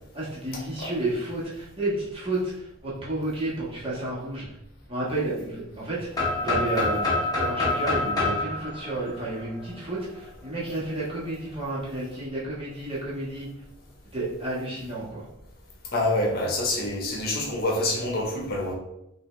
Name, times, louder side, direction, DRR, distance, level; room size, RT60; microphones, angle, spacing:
voice 1, 0.1-4.5 4.9-13.5 14.1-15.3, right 2 dB, 25° right, -7 dB, 1.5 m, -31 dB
sound 1, 6.1-10.0, left 2 dB, 20° left, 1.1 m, -27 dB
voice 2, 15.9-18.7, left 1 dB, 45° left, -2 dB, 1.0 m, -26 dB
5.6 x 2.7 x 3.3 m, 0.84 s
head